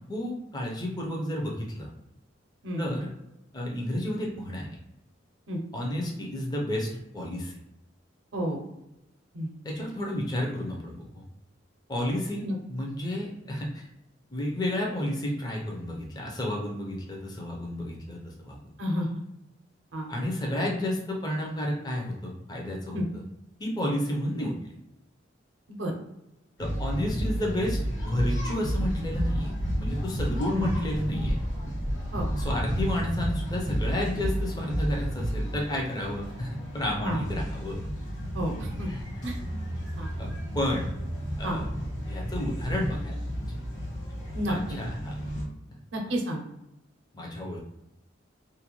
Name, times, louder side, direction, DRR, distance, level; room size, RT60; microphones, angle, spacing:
voice 1, 0.1-1.9 2.8-3.1 3.5-4.7 5.7-6.9 7.1-7.6 9.6-11.2 11.9-13.8 14.3-18.7 20.1-23.0 23.6-24.7 26.6-29.5 29.8-31.3 32.4-37.8 38.9-39.0 40.2-40.3 40.5-40.9 41.4-41.7 42.1-43.2 43.5-43.6 44.5-45.2 47.1-47.6, left 1 dB, 20° left, -1 dB, 0.5 m, -31 dB
voice 2, 18.8-19.2 19.9-20.1 22.9-23.0 25.7-25.9 30.5-30.7 32.1-32.3 37.0-37.2 38.3-38.9 39.2-39.3 40.0-40.1 41.4-41.6 44.3-44.8 45.9-46.4, equal, 75° right, 1 dB, 0.5 m, -30 dB
sound 1, 26.6-45.4, equal, 75° left, 1.0 m, -32 dB
2.5 x 2.2 x 2.9 m, 0.87 s
head